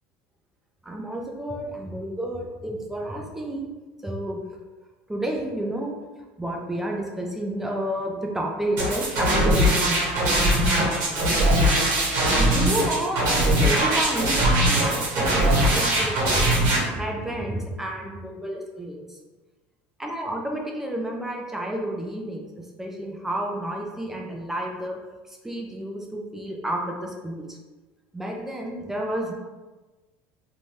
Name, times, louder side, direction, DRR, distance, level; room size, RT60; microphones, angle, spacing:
voice 1, 0.8-3.7 4.0-4.4 5.1-5.9 6.4-11.3 12.4-16.5 16.9-19.2 20.0-25.0 25.3-27.6 28.1-29.3, right 1 dB, 5° right, 0 dB, 0.3 m, -30 dB
sound 1, 8.8-16.8, right 1 dB, 60° right, 1.2 m, -21 dB
2.6 x 2.2 x 3.1 m, 1.2 s
supercardioid pair, 140°, 5 cm